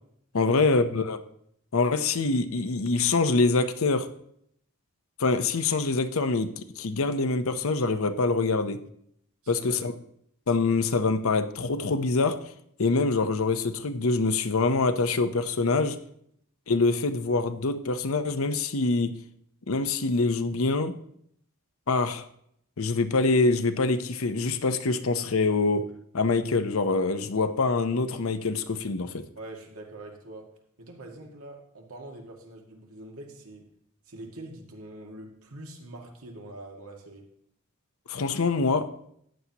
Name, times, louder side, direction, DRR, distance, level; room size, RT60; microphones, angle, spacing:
voice 1, 0.3-1.2 1.7-4.1 5.2-8.8 9.5-9.9 10.5-12.4 12.8-16.0 16.7-19.2 19.7-21.0 21.9-22.2 22.8-25.9 26.1-29.3 38.1-38.9, left 3 dB, 70° left, 0.8 m, -25 dB
voice 2, 9.4-9.8 29.4-33.7 34.1-37.3, right 2 dB, 80° right, 1.9 m, -44 dB
14.0 x 9.5 x 2.9 m
head